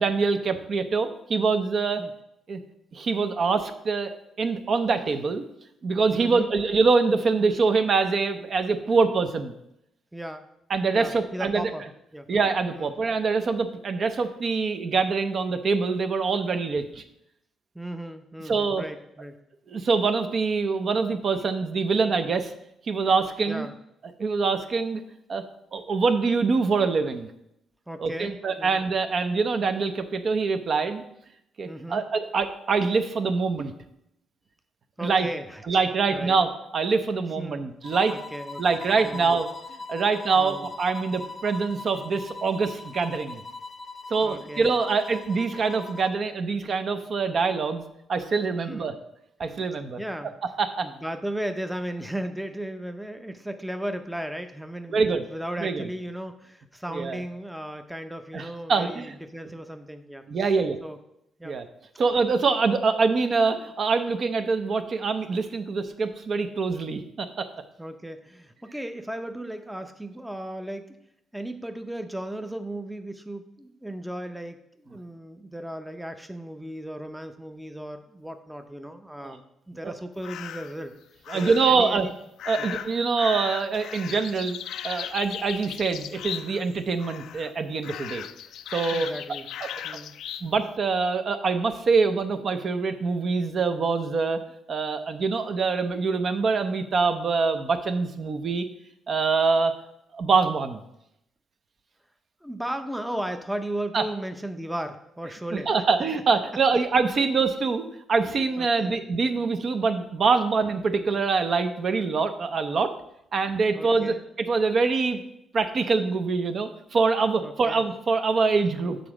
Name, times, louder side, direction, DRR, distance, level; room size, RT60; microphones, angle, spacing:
voice 1, 0.0-2.0 2.5-2.6 2.9-4.1 4.4-5.4 5.8-9.5 10.7-11.7 12.3-17.0 18.5-18.8 19.7-22.5 22.9-23.7 24.2-25.0 25.3-25.4 25.7-27.3 28.0-31.0 31.6-33.7 35.0-35.3 35.7-38.1 38.6-39.5 39.9-43.4 44.1-47.8 48.1-48.9 49.4-50.0 50.6-50.9 54.9-55.2 55.6-55.8 56.9-57.2 58.3-59.1 60.3-60.8 61.4-61.6 62.0-67.5 79.2-79.3 79.8-79.9 81.3-82.1 82.5-84.6 84.8-88.2 88.7-89.1 89.6-89.7 90.4-94.4 94.7-98.6 99.1-99.8 100.1-100.8 103.9-104.0 105.5-112.9 113.3-115.2 115.5-119.0, right 4 dB, 50° right, 8 dB, 0.7 m, -24 dB
voice 2, 6.2-6.5 10.1-10.5 10.9-11.9 12.1-12.3 12.7-12.9 17.7-19.4 23.5-23.7 27.9-28.8 31.6-32.0 35.0-35.6 36.1-36.4 37.4-37.7 38.1-38.6 39.0-39.4 40.3-40.7 44.2-44.7 48.5-48.9 50.0-50.3 50.8-60.2 60.8-61.0 61.4-61.5 67.8-71.0 71.3-74.6 74.8-80.9 81.3-82.1 82.6-82.7 88.9-89.5 89.8-90.2 102.4-105.7 108.6-109.0 113.7-114.2 117.4-117.8, right 1 dB, 5° right, 7 dB, 0.6 m, -36 dB
sound 1, 37.8-46.2, left 3 dB, 30° left, 0.7 m, -41 dB
sound 2, 80.2-80.8 81.3-81.8 82.4-86.7 87.0-87.5 87.8-90.5, left 10 dB, 80° left, 0.3 m, -37 dB
6.9 x 3.8 x 6.0 m, 0.79 s
cardioid pair, 90°, 0 cm